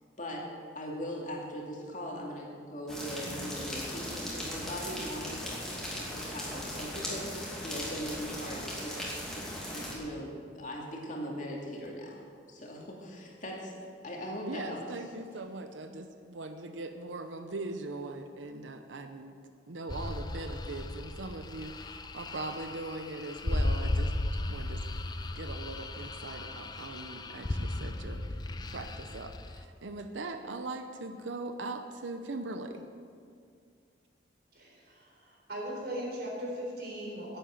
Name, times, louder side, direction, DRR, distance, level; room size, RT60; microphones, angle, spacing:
voice 1, 0.2-5.6 5.9-12.2 12.5-13.7 14.0-14.8, equal, 45° left, -2 dB, 2.4 m, -40 dB
sound 1, 2.9-9.9, equal, 5° left, 2.6 m, -38 dB
voice 2, 14.4-19.4 19.7-24.1 24.5-24.8 25.4-28.2 28.7-32.8, right 2 dB, 90° right, 7 dB, 0.8 m, -40 dB
sound 2, 19.9-29.6, left 1 dB, 20° left, 0.5 m, -35 dB
voice 3, 34.5-37.4, equal, 60° right, -2 dB, 4.0 m, -39 dB
11.0 x 8.9 x 8.9 m, 2.3 s
head